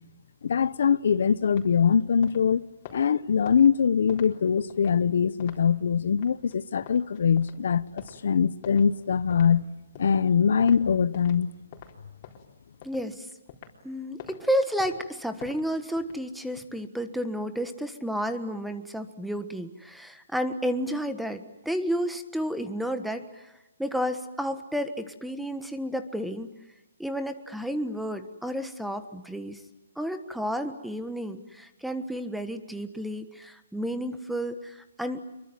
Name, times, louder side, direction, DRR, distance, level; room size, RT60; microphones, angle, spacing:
voice 1, 0.4-9.6 10.0-11.5, left 7 dB, 65° left, 0.9 m, -23 dB
sound 1, 1.3-11.4 11.7-13.8 14.2-14.4 14.8-16.6, left 8 dB, 35° left, 4.2 m, -47 dB
voice 2, 12.8-13.3 13.8-23.5 23.8-26.5 27.0-29.6 29.9-35.2, equal, ahead, 1.4 m, -31 dB
26.5 x 23.5 x 9.3 m
hypercardioid pair, 160°, 0 cm